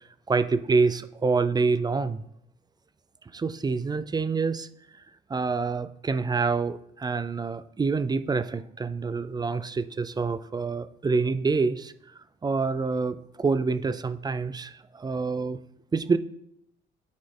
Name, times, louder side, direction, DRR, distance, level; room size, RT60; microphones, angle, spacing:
voice 1, 0.3-2.2 3.3-4.7 5.3-11.9 12.4-15.6 15.9-16.2, right 4 dB, 20° right, 13 dB, 0.4 m, -26 dB
9.3 x 4.2 x 3.8 m, 0.73 s
cardioid pair, 90°, 20 cm